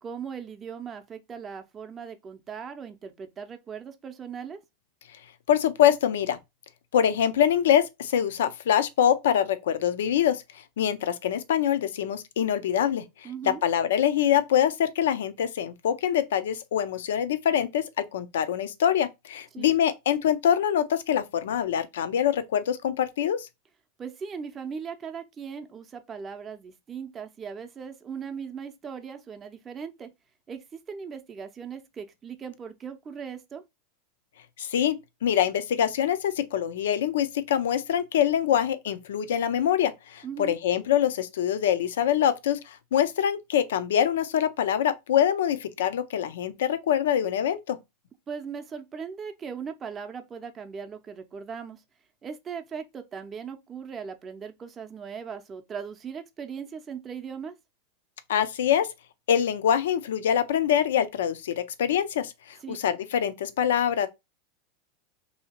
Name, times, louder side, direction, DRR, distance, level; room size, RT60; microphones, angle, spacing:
voice 1, 0.0-4.6 13.2-13.6 19.5-19.7 24.0-30.1 30.5-33.6 40.2-40.6 48.3-51.8 52.2-57.5 62.6-62.8, right 6 dB, 25° right, 0.5 m, -38 dB
voice 2, 5.5-6.4 6.9-10.4 10.8-23.5 34.6-35.0 35.2-47.8 58.3-58.9 59.3-64.1, left 9 dB, 85° left, 0.5 m, -24 dB
2.8 x 2.7 x 4.2 m
supercardioid pair, 125°, 0 cm